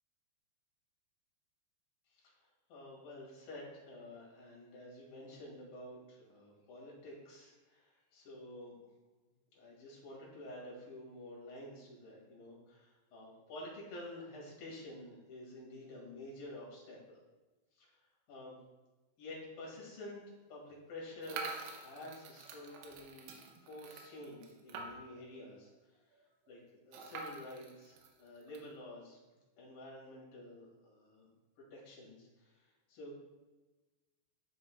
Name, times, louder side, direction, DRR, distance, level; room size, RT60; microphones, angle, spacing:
voice 1, 2.1-8.7 9.5-17.2 17.8-18.6 19.2-26.0 26.5-26.6 26.8-29.2 29.6-31.3 31.6-33.1, left 1 dB, 55° left, -4 dB, 3.6 m, -50 dB
sound 1, 21.2-25.3 25.7-25.8 26.0-26.1 26.9-28.7, right 4 dB, 90° right, 3.3 m, -47 dB
12.5 x 5.5 x 2.4 m, 1.2 s
omnidirectional pair, 5.3 m